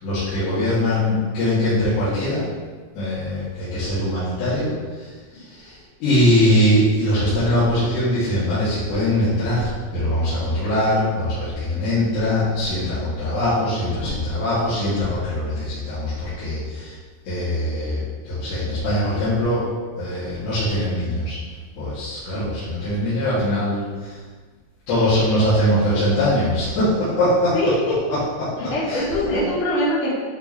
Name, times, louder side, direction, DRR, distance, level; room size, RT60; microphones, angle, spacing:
voice 1, 0.0-2.4 2.9-4.7 5.0-5.1 5.3-5.7 6.0-16.9 17.2-19.6 20.0-21.4 21.8-24.1 24.9-27.5 28.1-28.2 28.6-29.0, left 1 dB, 85° left, -14 dB, 5.0 m, -22 dB
voice 2, 28.6-30.1, left 1 dB, 45° left, -13 dB, 2.9 m, -22 dB
12.5 x 4.5 x 3.5 m, 1.4 s
omnidirectional pair, 4.7 m